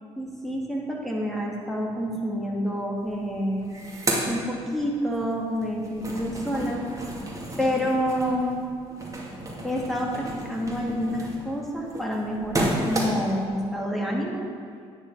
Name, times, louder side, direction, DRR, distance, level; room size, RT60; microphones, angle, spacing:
voice 1, 0.2-3.6 4.3-6.8 7.6-8.6 9.6-14.4, equal, ahead, -3 dB, 2.9 m, -28 dB
sound 1, 3.0-3.1 3.4-5.2 5.6-13.5, right 1 dB, 25° right, 2.6 m, -32 dB
9.8 x 9.5 x 5.1 m, 2.2 s
hypercardioid pair, 55°, 14 cm